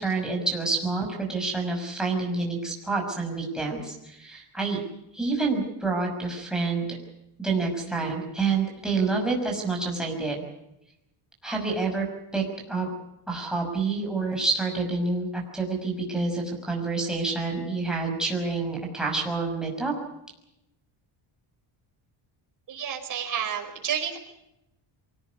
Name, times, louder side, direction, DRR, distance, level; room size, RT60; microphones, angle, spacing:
voice 1, 0.0-4.8 5.1-7.0 7.4-10.4 11.4-12.1 12.3-12.4 12.7-12.9 13.3-19.9, right 3 dB, ahead, -1 dB, 5.9 m, -28 dB
voice 2, 22.7-24.2, right 8 dB, 40° right, 3 dB, 5.1 m, -30 dB
24.5 x 18.0 x 8.2 m, 0.85 s
cardioid pair, 175°, 49 cm